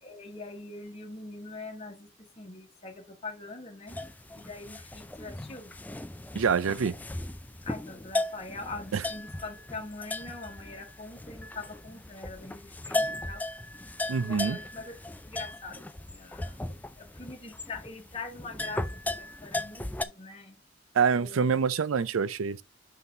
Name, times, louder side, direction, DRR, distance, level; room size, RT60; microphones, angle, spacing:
voice 1, 0.0-2.1 2.4-4.0 4.3-5.7 7.6-13.6 14.2-15.0 15.3-16.6 16.9-18.9 19.1-20.6 21.2-21.6, left 3 dB, 30° left, 1.2 m, -43 dB
sound 1, 3.9-20.0, left 2 dB, 10° left, 0.3 m, -37 dB
voice 2, 6.3-6.9 14.1-14.6 20.9-22.6, right 6 dB, 80° right, 0.4 m, -26 dB
5.7 x 5.7 x 3.3 m
head